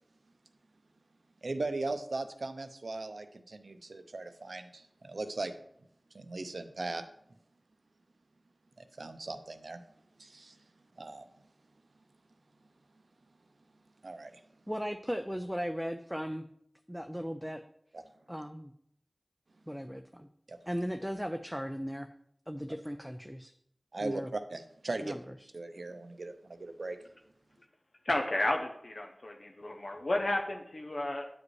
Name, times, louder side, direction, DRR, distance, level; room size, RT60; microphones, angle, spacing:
voice 1, 1.4-5.5 6.1-7.0 8.8-9.8 10.2-10.6 11.0-11.2 14.0-14.4 17.9-18.0 20.5-20.6 23.9-25.2 25.5-27.0, right 2 dB, 90° right, 9 dB, 0.5 m, -38 dB
voice 2, 14.7-16.5 16.9-17.6 18.3-18.7 19.7-20.3 20.7-22.1 22.5-23.5 24.0-24.3 25.0-25.5, equal, ahead, 7 dB, 0.4 m, -37 dB
voice 3, 28.0-31.3, left 1 dB, 70° left, 2 dB, 0.6 m, -32 dB
9.4 x 5.0 x 3.1 m, 0.72 s
wide cardioid pair, 45°, 0 cm